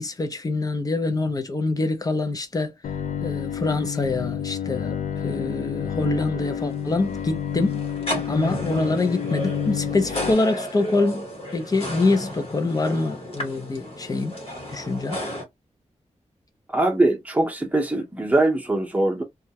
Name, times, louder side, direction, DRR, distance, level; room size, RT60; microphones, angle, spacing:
voice 1, 0.0-2.8 3.2-7.9 8.3-11.3 11.5-14.4 14.7-15.2, left 3 dB, 30° left, 0.5 m, -25 dB
Bowed string instrument, 2.8-10.3, left 8 dB, 90° left, 0.4 m, -29 dB
sound 1, 6.5-15.4, equal, 50° left, 1.2 m, -33 dB
voice 2, 16.7-19.2, right 2 dB, 10° right, 0.7 m, -22 dB
2.3 x 2.1 x 2.7 m
wide cardioid pair, 155°, 12 cm